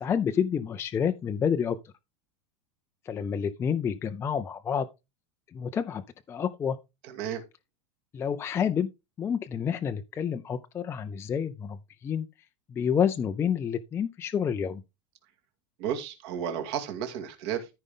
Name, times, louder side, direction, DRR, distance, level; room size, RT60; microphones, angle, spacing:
voice 1, 0.0-1.9 3.0-4.9 5.5-6.0 6.3-6.8 8.1-8.9 9.2-12.3 12.7-14.8, left 7 dB, 15° left, 0.4 m, -29 dB
voice 2, 7.1-7.4 15.8-17.7, right 9 dB, 55° right, 2.5 m, -33 dB
13.5 x 5.2 x 3.7 m
supercardioid pair, 160°, 16 cm